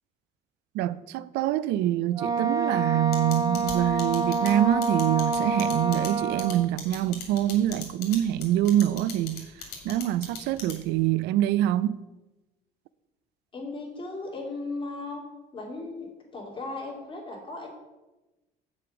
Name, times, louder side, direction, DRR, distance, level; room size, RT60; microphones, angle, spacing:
voice 1, 0.7-9.5 9.8-12.0, right 13 dB, 90° right, 0.4 m, -25 dB
Wind instrument woodwind instrument, 2.1-6.7, right 3 dB, 20° right, 0.6 m, -27 dB
sound 1, 3.1-11.0, left 7 dB, 75° left, 2.0 m, -39 dB
voice 2, 13.5-15.2 15.5-16.1 16.3-17.8, left 3 dB, 30° left, 2.6 m, -36 dB
6.9 x 5.1 x 6.0 m
cardioid pair, 110°, 17 cm